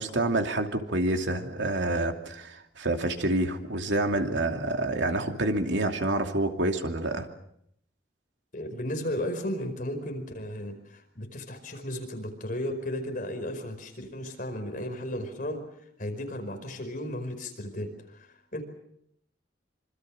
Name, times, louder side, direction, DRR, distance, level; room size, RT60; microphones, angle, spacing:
voice 1, 0.0-7.3, right 2 dB, 75° right, 4 dB, 2.7 m, -28 dB
voice 2, 8.5-15.6 16.0-18.6, left 1 dB, 45° left, 5 dB, 5.0 m, -34 dB
26.5 x 26.0 x 6.4 m, 0.73 s
head